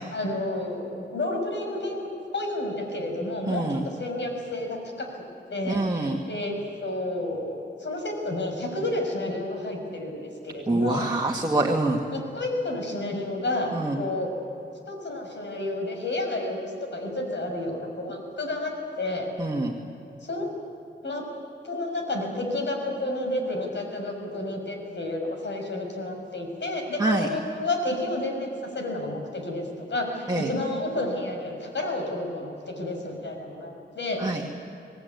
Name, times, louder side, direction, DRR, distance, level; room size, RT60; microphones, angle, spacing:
voice 1, 0.1-2.1 2.3-5.1 5.5-6.5 6.8-11.0 12.1-13.7 14.0-14.3 14.9-16.6 16.9-19.3 20.2-20.5 21.0-21.2 21.6-28.5 28.7-34.5, left 2 dB, 65° left, 2 dB, 6.0 m, -30 dB
voice 2, 3.5-3.9 5.7-6.2 10.7-12.0 13.7-14.0 19.4-19.7 27.0-27.3 30.3-30.5 34.2-34.4, right 2 dB, 20° right, 0 dB, 2.1 m, -25 dB
24.5 x 18.0 x 9.6 m, 2.8 s
wide cardioid pair, 75°, 20 cm